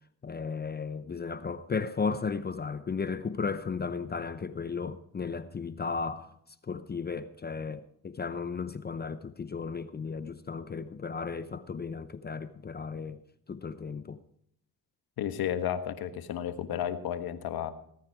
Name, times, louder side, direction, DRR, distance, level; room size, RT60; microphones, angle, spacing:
voice 1, 0.2-6.3 6.6-13.2 13.5-14.2, left 5 dB, 25° left, 0.7 m, -35 dB
voice 2, 15.2-17.7, left 10 dB, 65° left, 1.4 m, -32 dB
19.0 x 9.4 x 4.8 m
cardioid pair, 85°, 38 cm